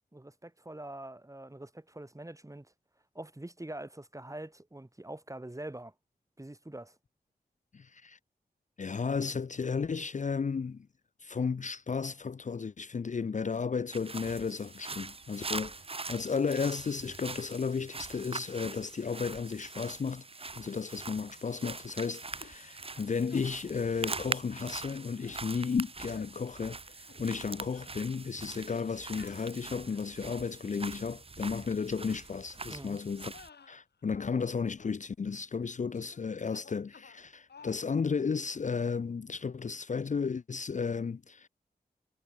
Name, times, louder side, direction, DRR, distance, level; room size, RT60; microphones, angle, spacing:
voice 1, 0.1-2.7 3.1-5.9 6.4-7.0 32.7-33.0, right 1 dB, 20° right, 6.3 m, -44 dB
voice 2, 7.7-8.2 8.8-10.9 11.2-20.2 20.6-33.3 33.7-41.5, left 5 dB, 50° left, 0.6 m, -34 dB
sound 1, 13.9-33.5, right 3 dB, 35° right, 0.9 m, -43 dB
sound 2, 21.6-22.0 22.4-22.6 22.9-23.5 24.1-24.3 24.9-25.5 26.0-26.4 26.9-27.5 27.7-28.0 29.1-30.2 30.8-31.2 31.9-32.1 32.5-32.7 33.2-34.5 34.8-35.0 35.9-36.2 36.5-37.2 37.5-37.8, left 6 dB, 85° left, 5.5 m, -54 dB
wide cardioid pair, 60°, 17 cm